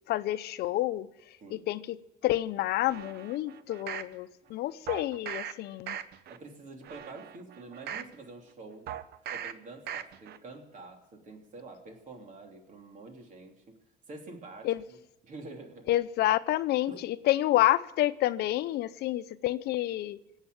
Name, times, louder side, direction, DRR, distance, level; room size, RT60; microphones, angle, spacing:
voice 1, 0.1-1.1 1.5-2.0 2.2-6.0 14.6-14.8 15.9-20.2, left 15 dB, 75° left, 0.6 m, -28 dB
sound 1, 2.9-4.1 4.9-5.5 5.9-6.4 6.8-8.1 8.9-9.5 9.9-10.4 10.8-10.9, right 9 dB, 65° right, 0.9 m, -39 dB
voice 2, 6.3-8.9 9.3-13.8 14.1-15.0 15.2-16.0 16.9-17.0, right 3 dB, 50° right, 3.1 m, -47 dB
19.0 x 8.2 x 9.2 m
cardioid pair, 110°, 17 cm